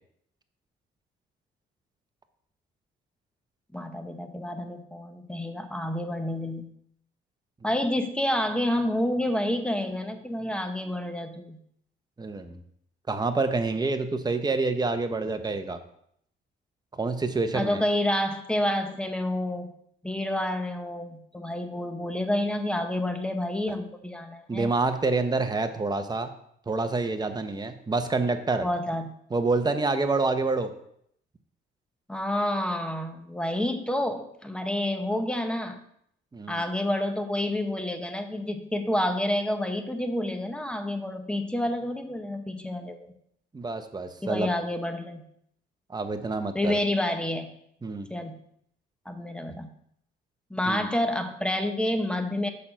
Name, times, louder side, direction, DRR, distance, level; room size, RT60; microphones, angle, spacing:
voice 1, 3.7-6.7 7.6-11.6 17.5-19.7 20.0-24.7 28.6-29.1 32.1-35.8 36.5-43.1 44.2-45.2 46.5-47.5 48.1-48.4 49.1-49.7 50.5-52.5, left 1 dB, 5° left, 6 dB, 1.0 m, -29 dB
voice 2, 12.2-12.6 13.1-15.8 16.9-17.8 24.5-26.3 26.7-28.6 29.3-30.7 36.3-36.7 43.5-44.5 45.9-46.8 47.8-48.1 50.7-50.9, right 3 dB, 20° right, 7 dB, 0.9 m, -27 dB
6.8 x 5.7 x 5.1 m, 0.70 s
cardioid pair, 90°, 20 cm